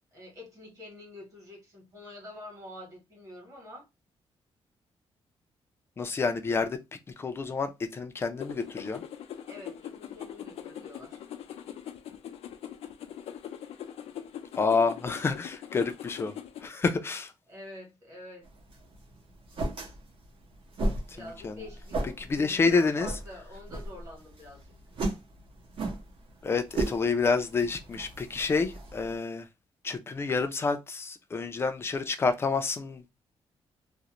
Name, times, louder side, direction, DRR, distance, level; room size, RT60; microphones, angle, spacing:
voice 1, 0.0-3.9 9.5-11.2 17.5-18.5 21.1-24.7, left 1 dB, 30° right, 1.1 m, -46 dB
voice 2, 6.0-6.8 7.2-9.0 14.5-16.3 16.6-17.3 21.2-21.6 22.2-23.1 26.4-29.5 29.8-33.1, left 4 dB, 25° left, 0.3 m, -28 dB
sound 1, 8.4-16.7, left 9 dB, 90° left, 0.4 m, -42 dB
sound 2, 18.4-29.1, right 2 dB, 65° right, 0.8 m, -36 dB
2.4 x 2.0 x 2.9 m
wide cardioid pair, 180°, 10 cm